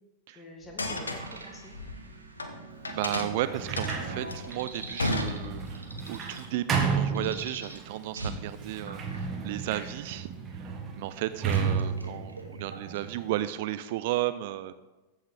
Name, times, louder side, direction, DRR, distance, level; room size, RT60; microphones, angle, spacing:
voice 1, 0.3-1.8 2.9-3.4 3.9-4.3, left 1 dB, 20° left, 2 dB, 1.8 m, -48 dB
sound 1, 0.6-2.5 2.8-5.9, left 2 dB, 75° left, 0.9 m, -33 dB
sound 2, 0.9-13.1, right 2 dB, 85° right, 1.2 m, -44 dB
voice 2, 2.9-10.3 10.5-14.7, right 14 dB, 50° right, 13 dB, 0.3 m, -34 dB
Sliding door, 3.4-7.9 8.5-13.4, right 6 dB, 25° right, 1.4 m, -33 dB
14.5 x 5.5 x 3.6 m, 1.1 s
figure-of-eight pair, 90°, 0 cm